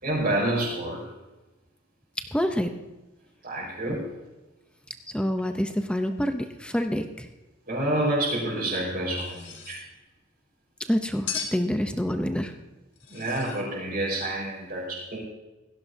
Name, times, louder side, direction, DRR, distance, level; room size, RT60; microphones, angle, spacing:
voice 1, 0.0-1.1 3.4-4.1 7.7-9.8 13.1-15.2, right 1 dB, 45° right, -9 dB, 4.9 m, -28 dB
voice 2, 2.3-2.7 5.1-7.3 10.9-12.5, equal, 5° left, 6 dB, 0.6 m, -27 dB
sound 1, 9.1-9.9 11.3-11.7 13.0-13.7, left 7 dB, 65° left, 2.0 m, -36 dB
17.5 x 15.5 x 2.7 m, 1.1 s
head